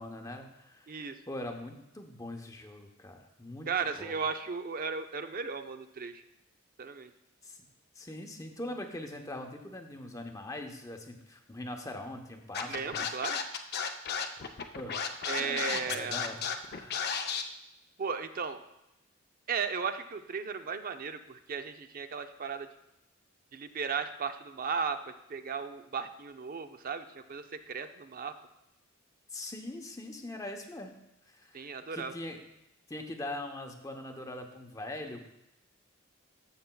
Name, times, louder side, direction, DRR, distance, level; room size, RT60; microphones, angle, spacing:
voice 1, 0.0-4.2 7.4-7.6 8.0-13.1 14.7-14.9 15.4-16.4 16.7-17.0 29.3-30.9 31.3-32.4 32.9-35.2, left 1 dB, 15° left, 3 dB, 0.8 m, -42 dB
voice 2, 0.9-1.2 3.7-6.2 6.8-7.1 12.7-13.4 15.3-16.2 18.0-18.6 19.5-22.7 23.5-28.3 31.5-32.1, right 5 dB, 45° right, 9 dB, 0.5 m, -35 dB
Scratching (performance technique), 12.5-17.4, left 6 dB, 50° left, 0.6 m, -33 dB
13.0 x 7.0 x 2.3 m, 0.87 s
head